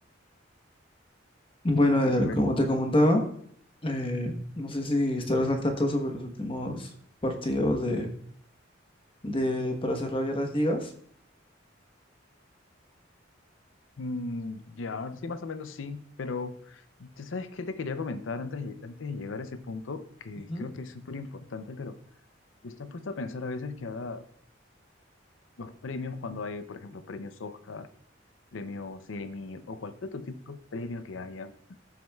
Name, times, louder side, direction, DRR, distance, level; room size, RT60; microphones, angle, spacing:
voice 1, 1.6-3.2 3.8-6.9 7.2-8.1 9.2-10.9 20.5-20.6, left 1 dB, 25° left, 3 dB, 1.2 m, -26 dB
voice 2, 14.0-22.0 22.6-24.3 25.6-27.9 28.5-31.8, left 3 dB, 80° left, 11 dB, 0.6 m, -37 dB
14.5 x 6.3 x 2.3 m, 0.62 s
head